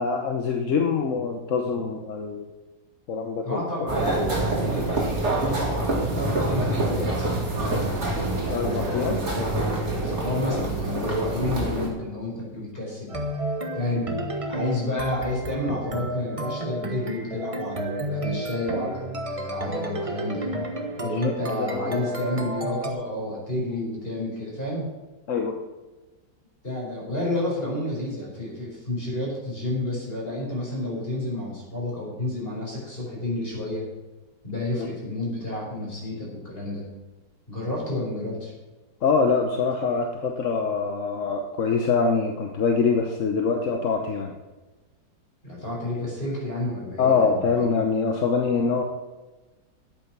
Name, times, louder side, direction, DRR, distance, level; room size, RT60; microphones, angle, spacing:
voice 1, 0.0-2.4 3.1-3.6 8.5-9.2 21.2-22.1 25.3-25.6 34.8-34.9 39.0-44.3 47.0-48.8, left 5 dB, 50° left, 4 dB, 1.1 m, -24 dB
voice 2, 3.4-5.8 6.1-13.1 13.7-20.5 21.0-24.9 26.6-33.9 34.4-36.8 37.5-38.5 45.4-47.8, left 1 dB, 30° left, -3 dB, 5.0 m, -30 dB
sound 1, 3.9-11.9, right 2 dB, 35° right, 2.5 m, -26 dB
sound 2, 13.1-22.9, right 1 dB, 20° right, 1.1 m, -32 dB
11.0 x 8.6 x 6.0 m, 1.2 s
omnidirectional pair, 2.0 m